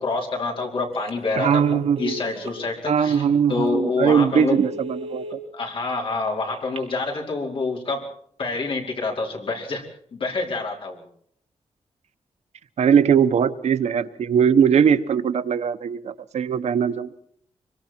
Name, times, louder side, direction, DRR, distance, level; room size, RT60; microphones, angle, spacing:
voice 1, 0.0-4.6 5.5-8.1 8.4-9.8 10.1-11.0, left 3 dB, 50° left, 0 dB, 5.0 m, -27 dB
Telephone, 0.9-1.2 1.5-2.6 3.1-3.2 3.7-3.8 4.2-5.3 6.5-7.2, equal, 65° right, 3.2 m, -36 dB
voice 2, 1.4-2.1 2.9-5.2 12.8-17.1, right 7 dB, 85° right, 11 dB, 1.1 m, -20 dB
25.5 x 24.0 x 4.5 m, 0.62 s
wide cardioid pair, 165°, 11 cm